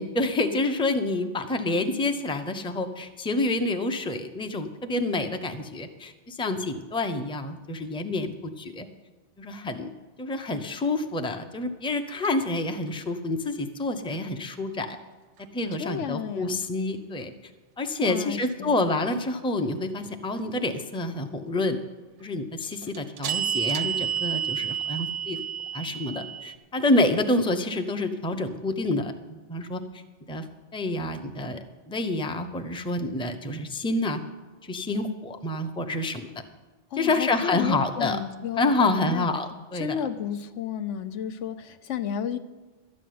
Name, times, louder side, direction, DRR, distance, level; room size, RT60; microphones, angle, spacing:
voice 1, 0.0-8.9 9.4-9.9 10.2-15.0 15.5-17.3 17.8-21.8 22.2-25.4 25.7-29.8 30.3-30.4 30.7-31.6 31.9-34.2 34.6-36.3 37.0-38.2 38.6-40.0, left 2 dB, 5° left, 7 dB, 0.6 m, -28 dB
sound 1, 12.2-12.3 22.6-26.6, right 9 dB, 85° right, 1.0 m, -30 dB
voice 2, 15.8-16.6 18.0-18.8 36.9-39.3 39.8-42.4, left 8 dB, 85° left, 10 dB, 1.1 m, -32 dB
12.5 x 6.3 x 9.4 m, 1.3 s
omnidirectional pair, 1.2 m